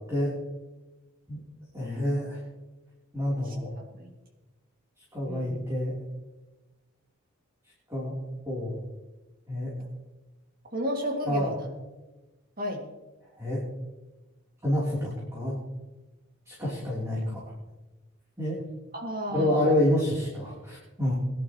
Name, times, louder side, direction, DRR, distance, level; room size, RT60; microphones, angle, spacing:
voice 1, 1.7-2.4 3.1-3.7 5.1-5.9 7.9-8.2 8.4-8.8 9.5-9.7 11.2-11.5 13.4-13.6 14.6-15.6 16.4-17.5 18.4-18.6 19.3-21.1, left 1 dB, 15° right, -7 dB, 3.3 m, -28 dB
voice 2, 3.4-4.1 5.3-5.6 10.7-11.7 12.6-12.8 18.9-19.7, equal, 40° right, 1 dB, 2.3 m, -33 dB
21.5 x 11.0 x 3.0 m, 1.1 s
head